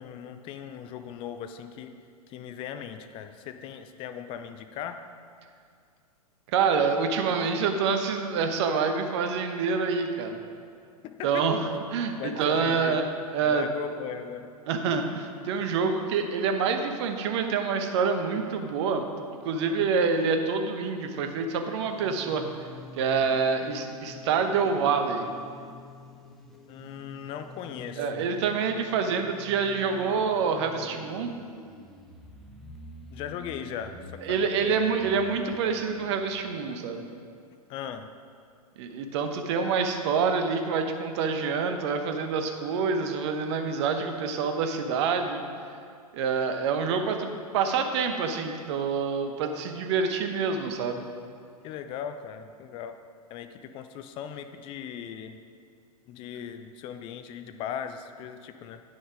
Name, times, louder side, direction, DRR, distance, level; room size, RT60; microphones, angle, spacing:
voice 1, 0.0-1.9 2.3-5.0 11.0-11.4 12.2-13.0 13.4-14.5 26.7-28.3 33.1-34.0 34.3-34.7 37.7-38.1 51.6-53.0 53.3-55.4 56.1-58.8, left 8 dB, 25° left, 8 dB, 0.5 m, -38 dB
voice 2, 6.5-10.4 11.2-13.7 14.7-19.0 19.4-22.4 23.0-25.3 28.0-31.3 34.2-37.0 38.8-45.4 46.1-51.0, right 5 dB, 45° right, 6 dB, 1.0 m, -27 dB
sound 1, 21.9-36.2, left 1 dB, ahead, 0.9 m, -47 dB
9.5 x 6.3 x 4.9 m, 2.3 s
figure-of-eight pair, 105°, 20 cm